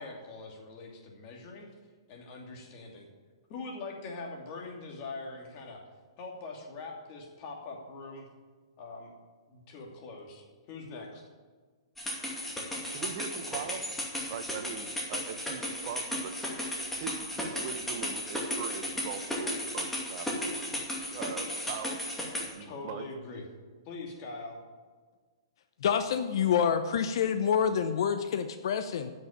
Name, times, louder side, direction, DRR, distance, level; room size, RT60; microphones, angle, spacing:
voice 1, 0.0-1.7 2.1-3.1 3.5-5.8 6.2-8.3 8.8-9.1 9.5-11.2 22.6-23.4 23.8-24.6, left 3 dB, 40° left, 0 dB, 2.7 m, -42 dB
sound 1, 12.0-22.5, left 1 dB, 5° left, 2.4 m, -35 dB
voice 2, 12.9-13.8 14.3-16.4 17.0-20.8 21.1-23.1, right 8 dB, 50° right, 8 dB, 1.2 m, -41 dB
voice 3, 25.8-29.1, left 7 dB, 65° left, 9 dB, 0.7 m, -27 dB
10.5 x 6.5 x 8.7 m, 1.5 s
hypercardioid pair, 125°, 3 cm